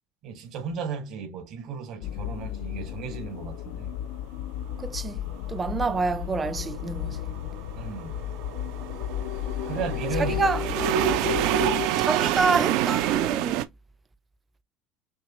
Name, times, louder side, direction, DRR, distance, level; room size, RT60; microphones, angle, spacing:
voice 1, 0.2-3.9 7.8-8.2 9.7-10.5 11.0-11.2, right 6 dB, 55° right, 1.8 m, -35 dB
sound 1, 2.0-11.9, left 12 dB, 75° left, 0.4 m, -33 dB
voice 2, 4.8-5.2 5.5-7.2 10.2-10.6 12.0-13.6, right 4 dB, 20° right, 0.6 m, -27 dB
sound 2, 6.7-13.6, right 13 dB, 70° right, 0.6 m, -27 dB
6.2 x 2.3 x 3.1 m
cardioid pair, 125°, 0 cm